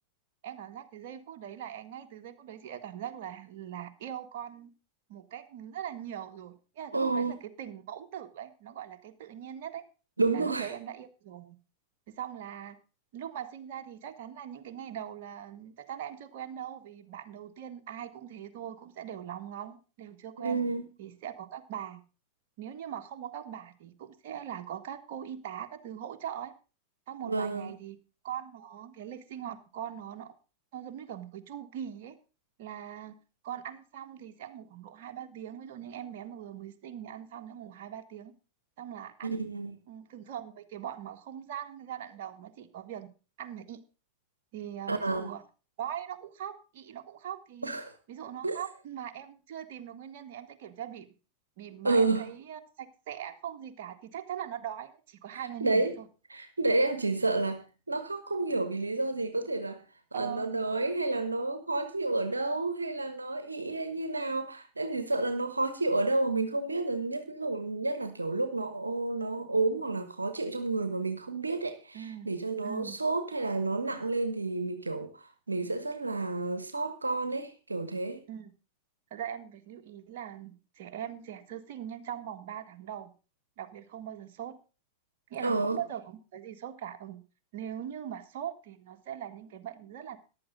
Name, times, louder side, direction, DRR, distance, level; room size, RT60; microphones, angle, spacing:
voice 1, 0.4-4.7 5.1-9.8 10.3-11.6 12.1-12.8 13.1-20.6 21.0-22.0 22.6-26.5 27.1-28.0 28.2-30.3 30.7-32.2 32.6-33.1 33.4-38.3 38.8-39.3 39.9-43.1 43.4-43.8 44.5-45.4 45.8-47.7 48.1-51.1 51.6-56.1 60.1-60.6 71.9-72.3 72.6-73.0 78.3-78.5 79.1-83.1 83.6-84.5 85.3-87.2 87.5-90.2, right 10 dB, 50° right, 1.6 m, -41 dB
voice 2, 6.9-7.4 10.2-10.7 20.4-20.8 27.2-27.7 39.2-39.8 44.9-45.3 47.6-47.9 48.4-48.6 51.8-52.3 55.3-56.0 56.3-59.8 60.1-78.2 85.4-85.8, right 3 dB, 80° right, 1.3 m, -30 dB
14.5 x 11.0 x 3.7 m
figure-of-eight pair, 90°, 0 cm